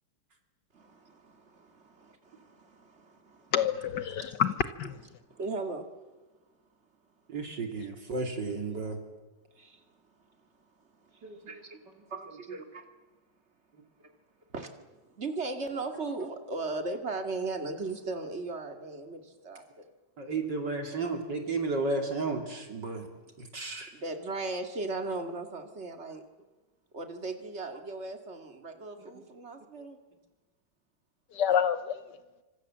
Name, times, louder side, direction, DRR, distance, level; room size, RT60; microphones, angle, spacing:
voice 1, 0.7-3.5 4.2-4.4 5.3-5.9 9.6-9.8 11.0-11.8 12.1-12.9 14.0-14.1 14.5-14.7 15.0-19.6 23.9-26.2 26.9-30.0, right 3 dB, 30° right, 2.5 m, -37 dB
voice 2, 3.5-4.9 31.3-31.9, left 8 dB, 60° left, 1.5 m, -27 dB
voice 3, 7.3-9.0 11.2-11.4 12.3-12.6 15.6-15.7 15.9-16.0 20.2-23.1 23.4-23.9 29.0-29.1, right 3 dB, 50° right, 3.3 m, -33 dB
26.5 x 25.5 x 7.5 m
omnidirectional pair, 2.4 m